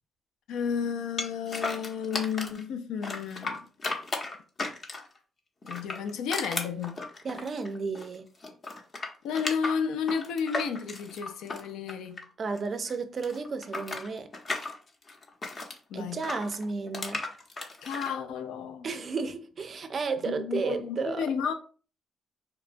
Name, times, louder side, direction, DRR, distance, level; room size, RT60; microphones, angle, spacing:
voice 1, 0.5-3.7 5.6-7.0 9.2-12.2 15.9-16.2 17.8-18.9 20.3-21.5, left 6 dB, 90° left, 0.4 m, -32 dB
sound 1, 1.2-2.6 3.0-5.2 5.6-8.2 8.4-12.6 12.9-15.8 16.2-18.1, left 3 dB, 40° left, 0.6 m, -35 dB
voice 2, 7.2-8.3 12.4-14.3 15.9-17.3 18.8-21.3, right 4 dB, 45° right, 0.3 m, -33 dB
2.9 x 2.2 x 2.5 m
cardioid pair, 90°, 0 cm